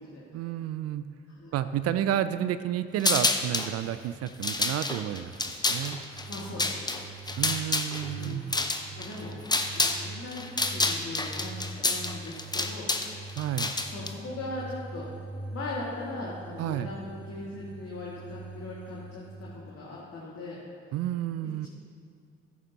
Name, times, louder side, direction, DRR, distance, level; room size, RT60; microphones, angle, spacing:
voice 1, 0.3-1.1 1.5-5.3 5.7-6.0 7.4-8.5 13.4-13.7 16.6-16.9 20.9-21.7, right 11 dB, 50° right, 13 dB, 0.4 m, -30 dB
sound 1, 3.0-3.7 4.3-10.0 10.3-14.1, left 2 dB, 15° left, 0.8 m, -28 dB
sound 2, 4.3-19.3, right 2 dB, 85° right, 1.6 m, -44 dB
voice 2, 6.3-7.0 8.1-8.5 9.0-9.4 9.7-11.6 11.8-12.9 13.8-15.1 15.5-20.6 21.4-21.7, left 2 dB, 45° left, -5 dB, 2.0 m, -39 dB
15.0 x 8.3 x 2.9 m, 2.4 s
figure-of-eight pair, 40°, 31 cm